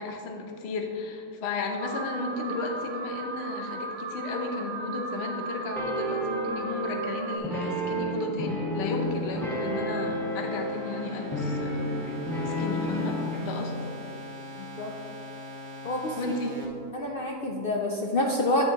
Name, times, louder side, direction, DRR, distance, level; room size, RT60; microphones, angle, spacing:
voice 1, 0.0-11.8 12.4-13.9 16.2-16.5, left 3 dB, 50° left, 2 dB, 0.9 m, -34 dB
Alarm, 1.8-7.4, right 3 dB, 60° right, 0.7 m, -36 dB
sound 1, 5.7-13.5, equal, ahead, 1.1 m, -31 dB
sound 2, 8.9-16.7, left 1 dB, 90° right, 2.0 m, -42 dB
voice 2, 14.6-14.9 15.8-16.2 16.9-18.6, left 1 dB, 75° left, -1 dB, 0.5 m, -28 dB
9.1 x 7.5 x 2.9 m, 2.7 s
omnidirectional pair, 1.8 m